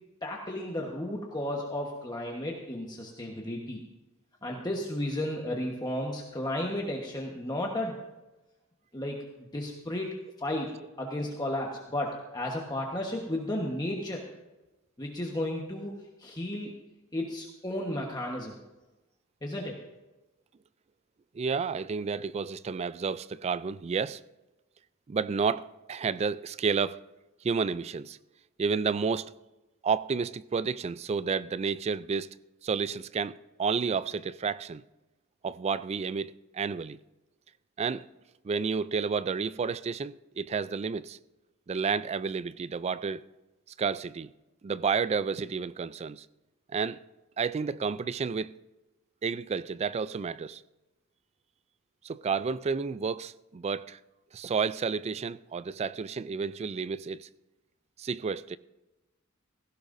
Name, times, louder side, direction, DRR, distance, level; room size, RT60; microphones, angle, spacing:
voice 1, 0.2-3.8 4.4-8.0 8.9-9.2 9.5-10.1 10.4-10.7 11.0-14.2 15.0-16.7 17.1-18.6 19.4-19.8, left 1 dB, 20° left, 1.2 m, -33 dB
voice 2, 21.3-24.2 25.1-27.0 27.4-28.2 28.6-29.3 29.8-32.3 32.6-34.8 35.4-37.0 37.8-38.1 38.4-41.2 41.7-43.2 43.8-44.3 44.6-46.3 46.7-47.0 47.4-48.5 49.2-50.6 52.0-54.0 54.3-57.3 58.0-58.6, right 5 dB, 30° right, 0.3 m, -31 dB
17.0 x 15.5 x 2.6 m
head